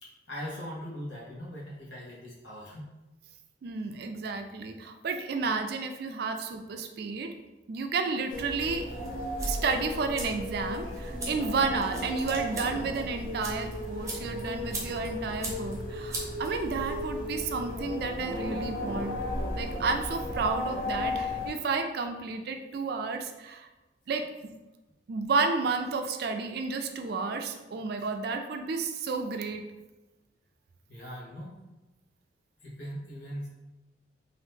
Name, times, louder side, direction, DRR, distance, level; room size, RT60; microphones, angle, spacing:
voice 1, 0.0-2.8 30.9-31.5 32.6-33.5, equal, 75° left, -5 dB, 1.1 m, -40 dB
voice 2, 3.6-7.4 7.7-8.9 9.4-19.2 19.5-23.7 24.1-24.3 25.1-29.7, right 4 dB, 55° right, 5 dB, 0.3 m, -31 dB
sound 1, 8.3-21.5, left 1 dB, 45° left, 0.7 m, -35 dB
sound 2, 9.0-17.0, right 2 dB, 15° right, 0.6 m, -42 dB
2.8 x 2.6 x 3.5 m, 1.1 s
head